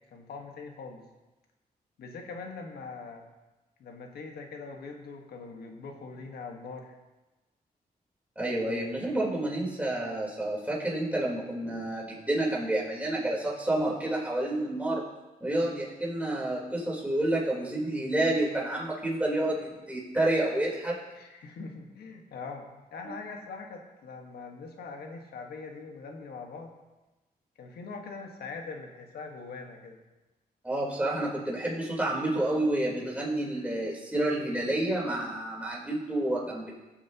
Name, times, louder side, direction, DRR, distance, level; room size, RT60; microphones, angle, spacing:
voice 1, 0.1-1.0 2.0-3.2 3.8-6.9 21.1-26.7 27.6-30.0, left 4 dB, 85° left, 2 dB, 1.5 m, -42 dB
voice 2, 8.4-15.0 15.4-21.0 30.6-36.7, right 1 dB, 10° right, -5 dB, 3.8 m, -29 dB
18.0 x 7.3 x 2.9 m, 1.1 s
cardioid pair, 85°, 16 cm